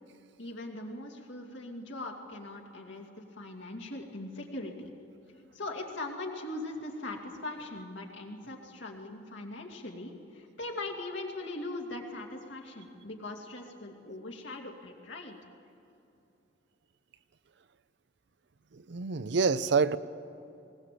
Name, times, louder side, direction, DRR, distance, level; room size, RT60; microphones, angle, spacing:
voice 1, 0.4-4.9 5.5-15.4, left 2 dB, 80° left, 0 dB, 2.6 m, -40 dB
voice 2, 18.7-20.0, right 5 dB, 65° right, 14 dB, 0.6 m, -27 dB
20.0 x 18.5 x 7.7 m, 2.8 s
head